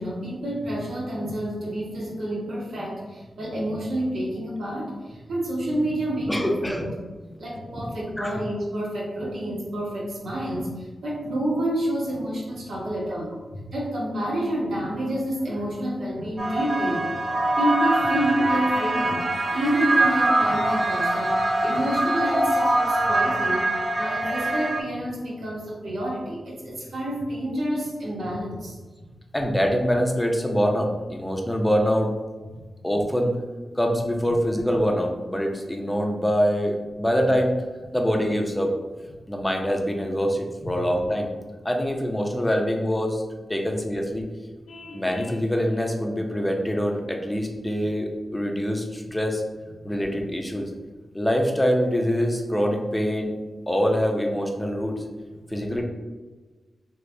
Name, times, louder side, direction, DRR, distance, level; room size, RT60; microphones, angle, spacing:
voice 1, 0.0-6.9 7.4-17.2 17.6-23.7 23.9-28.8, right 1 dB, 80° right, -5 dB, 1.1 m, -28 dB
voice 2, 6.3-6.9 8.2-8.3 13.1-13.2 29.3-32.1 32.8-33.4 33.8-37.5 37.9-38.7 39.3-41.3 41.6-43.2 43.5-44.3 44.9-49.4 49.8-50.7 51.1-53.3 53.7-55.0 55.5-55.8, equal, 10° left, 2 dB, 0.5 m, -24 dB
sound 1, 16.4-24.8, right 1 dB, 40° right, 0.7 m, -23 dB
Vehicle horn car horn honking, 44.7-45.4, left 2 dB, 85° left, 0.4 m, -42 dB
3.2 x 2.8 x 2.6 m, 1.3 s
cardioid pair, 75°, 0 cm